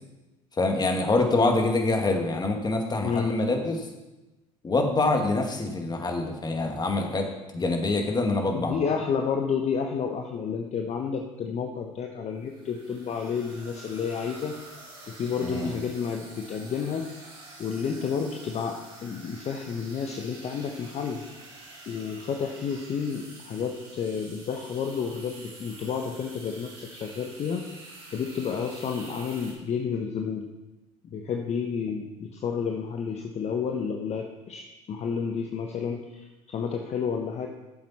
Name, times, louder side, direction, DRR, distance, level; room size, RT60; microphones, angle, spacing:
voice 1, 0.6-3.9 4.6-7.3 7.5-8.7 15.4-15.7, left 2 dB, 25° left, 3 dB, 2.1 m, -25 dB
voice 2, 3.0-3.4 8.5-14.6 15.1-17.1 17.6-21.3 21.9-27.6 28.1-30.5 31.0-34.6 34.9-37.5, left 6 dB, 40° left, 3 dB, 1.1 m, -30 dB
sound 1, 12.4-29.5, right 2 dB, 65° right, 4.4 m, -47 dB
14.0 x 7.5 x 4.3 m, 1.1 s
hypercardioid pair, 65°, 17 cm